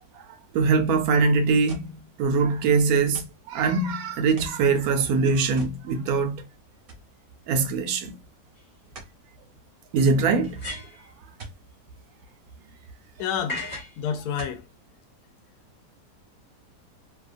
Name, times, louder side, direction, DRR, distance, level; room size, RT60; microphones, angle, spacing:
voice 1, 0.5-6.4 7.5-8.2 9.9-10.6, right 4 dB, 70° right, 0.9 m, -22 dB
sound 1, 1.7-2.0 3.1-3.5 4.4-4.7 5.6-5.8 6.2-6.3 6.9-7.1 8.9-9.2 11.4-11.6 13.1-13.2 14.4-14.7 15.4-15.5, right 3 dB, 50° right, 0.7 m, -42 dB
sound 2, 8.6-8.7 10.4-11.1 13.5-14.0, left 2 dB, 30° left, 1.0 m, -35 dB
voice 2, 13.2-13.7 14.0-14.6, left 8 dB, 70° left, 0.9 m, -29 dB
2.8 x 2.2 x 2.4 m
omnidirectional pair, 1.8 m